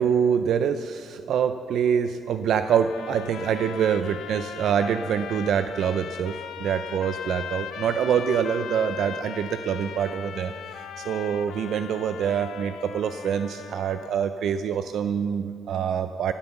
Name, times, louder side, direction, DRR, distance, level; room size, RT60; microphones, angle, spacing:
voice 1, 0.0-16.3, right 7 dB, 70° right, 10 dB, 0.6 m, -25 dB
sound 1, 2.6-14.2, left 8 dB, 75° left, 1.2 m, -39 dB
15.5 x 13.0 x 7.0 m, 2.2 s
cardioid pair, 90°, 0 cm